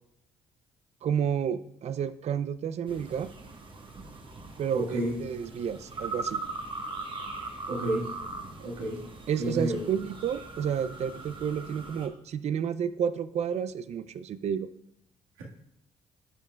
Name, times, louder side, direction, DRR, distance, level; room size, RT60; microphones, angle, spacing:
voice 1, 1.0-3.3 4.6-6.4 9.3-14.7, right 8 dB, 50° right, 15 dB, 0.5 m, -31 dB
sound 1, 2.9-12.1, right 3 dB, 35° right, 1.2 m, -40 dB
voice 2, 4.7-5.1 7.7-8.1 8.6-9.0 9.4-9.8 15.4-15.5, right 1 dB, 90° right, -3 dB, 1.8 m, -30 dB
13.5 x 5.4 x 2.3 m, 0.76 s
supercardioid pair, 65°, 14 cm